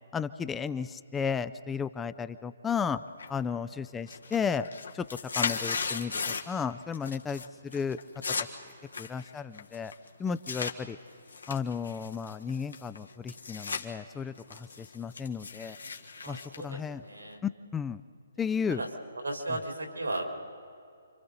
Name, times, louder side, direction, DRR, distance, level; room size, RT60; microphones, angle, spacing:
voice 1, 0.1-3.0 3.3-4.7 4.9-5.1 5.3-7.4 7.7-8.0 9.0-9.9 10.2-11.0 11.5-15.8 16.3-16.4 16.6-17.0 17.4-18.0 18.4-18.8, left 6 dB, 10° left, 13 dB, 0.5 m, -33 dB
sound 1, 3.2-3.6 3.9-6.6 6.9-7.5 7.7-10.7 11.3-13.8 14.2-17.4, left 5 dB, 75° left, 1.7 m, -36 dB
voice 2, 16.2-17.4 18.7-18.9 19.1-20.4, right 2 dB, 90° right, 1 dB, 3.9 m, -36 dB
29.5 x 25.0 x 4.1 m, 2.5 s
figure-of-eight pair, 140°, 0 cm